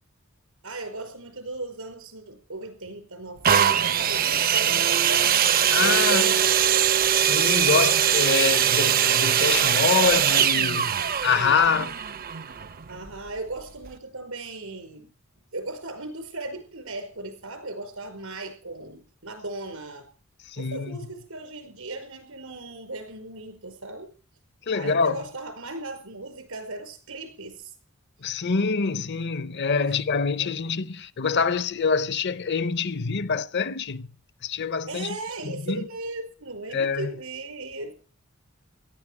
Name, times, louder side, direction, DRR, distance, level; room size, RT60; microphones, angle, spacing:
voice 1, 0.6-5.3 5.8-6.8 8.1-8.2 11.7-11.9 12.9-15.1 15.5-20.1 20.6-24.1 24.7-27.7 29.7-30.5 34.9-37.9, right 2 dB, 85° right, 5.1 m, -37 dB
sound 1, 3.4-13.1 13.9-14.0, right 9 dB, 45° right, 0.6 m, -22 dB
voice 2, 5.7-6.3 7.2-10.9 11.2-11.9 20.5-21.0 24.7-25.2 28.2-34.1 34.4-35.2 35.4-35.8 36.7-37.1, left 5 dB, 55° left, 0.7 m, -25 dB
17.5 x 12.5 x 4.8 m
head